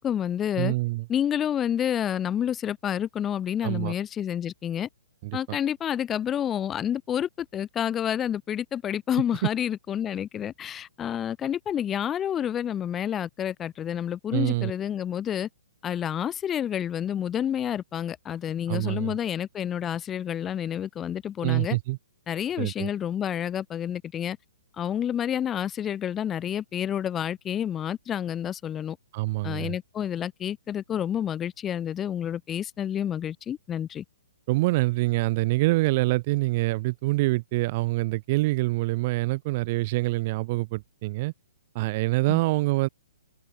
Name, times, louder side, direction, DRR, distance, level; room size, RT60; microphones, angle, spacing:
voice 1, 0.0-0.7 1.1-4.9 5.3-15.5 15.8-21.8 22.3-24.4 24.8-29.0 29.4-34.0 42.3-42.4, left 9 dB, 20° left, 1.0 m, -29 dB
voice 2, 0.6-1.0 3.6-3.9 5.2-5.6 14.3-14.7 18.7-19.1 21.4-22.0 22.6-22.9 29.1-29.7 34.5-41.3 41.7-42.9, right 21 dB, 40° right, 0.4 m, -25 dB
open air
hypercardioid pair, 135°, 0 cm